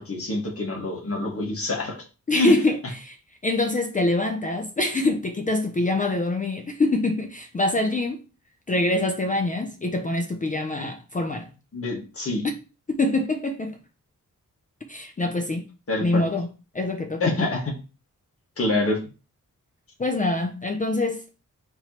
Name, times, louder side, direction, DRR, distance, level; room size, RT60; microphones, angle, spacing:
voice 1, 0.0-2.0 2.3-2.5 11.7-12.4 15.9-16.2 17.2-17.7 18.6-19.0, left 2 dB, 45° left, 1.5 m, -26 dB
voice 2, 2.3-3.2 3.4-8.2 8.7-11.5 12.4-12.5 12.9-13.8 14.9-15.7 16.0-16.5 16.7-17.4 20.0-21.2, left 2 dB, 25° left, 0.4 m, -25 dB
4.4 x 3.0 x 2.8 m
wide cardioid pair, 120°, 32 cm